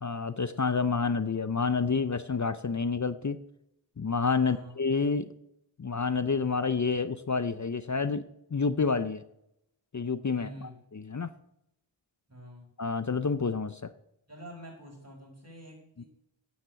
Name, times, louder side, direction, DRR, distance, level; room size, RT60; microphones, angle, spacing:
voice 1, 0.0-3.4 4.0-5.3 5.8-9.2 9.9-10.5 10.9-11.3 12.8-13.9, left 4 dB, 40° left, 13 dB, 0.6 m, -29 dB
voice 2, 4.4-4.8 10.3-10.7 12.3-12.7 14.3-16.1, equal, 30° right, 0 dB, 5.1 m, -47 dB
9.9 x 7.2 x 9.3 m, 0.80 s
wide cardioid pair, 45°, 48 cm